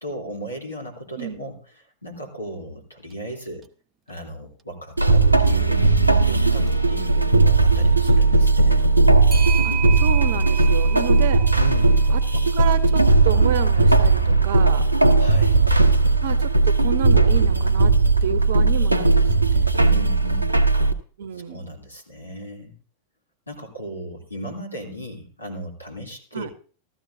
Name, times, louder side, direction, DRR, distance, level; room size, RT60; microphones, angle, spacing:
voice 1, 0.0-3.6 4.1-8.8 11.5-12.0 15.2-15.6 19.8-20.6 21.3-22.7 23.5-26.5, equal, 80° left, 0 dB, 2.9 m, -36 dB
Clock, 3.1-3.2 3.6-3.7 6.5-6.8 9.3-13.5, right 9 dB, 20° right, 0.8 m, -34 dB
sound 1, 5.0-20.9, right 3 dB, 85° right, 0.8 m, -17 dB
voice 2, 9.6-11.4 12.1-12.2 12.5-14.8 16.2-17.9 18.2-19.8 21.2-21.8 26.3-26.5, right 10 dB, 60° right, 14 dB, 0.9 m, -30 dB
15.0 x 13.5 x 2.6 m, 0.39 s
figure-of-eight pair, 90°, 0 cm